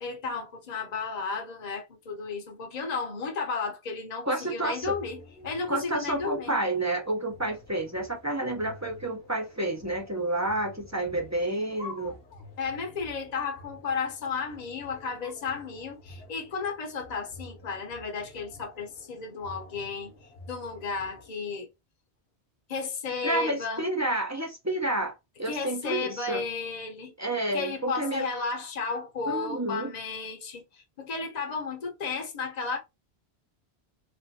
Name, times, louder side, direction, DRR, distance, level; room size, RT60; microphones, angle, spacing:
voice 1, 0.0-6.6 12.6-20.1 20.5-21.7 22.7-23.9 25.5-27.1 27.5-32.8, left 4 dB, 45° left, 0.9 m, -33 dB
voice 2, 4.2-4.9 5.7-12.2 23.2-25.1 25.4-26.4 27.2-28.3 29.3-29.9, right 1 dB, 20° right, 0.6 m, -30 dB
sound 1, 4.6-21.3, left 2 dB, 65° left, 1.2 m, -50 dB
3.3 x 2.6 x 2.7 m
omnidirectional pair, 1.1 m